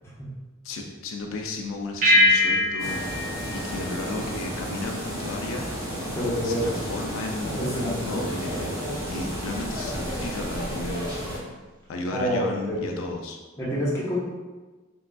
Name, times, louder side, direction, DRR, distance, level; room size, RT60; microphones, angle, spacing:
voice 1, 0.6-3.0 3.5-5.7 6.4-8.7 9.1-11.1 11.9-13.4, left 2 dB, 90° left, 2 dB, 0.4 m, -34 dB
sound 1, 2.0-4.8, left 2 dB, 40° right, 0.4 m, -23 dB
sound 2, 2.8-11.4, equal, 20° right, 0.9 m, -32 dB
voice 2, 6.2-6.7 7.4-8.0 12.1-12.9 13.6-14.2, equal, 15° left, -8 dB, 0.8 m, -27 dB
3.4 x 2.5 x 2.3 m, 1.2 s
head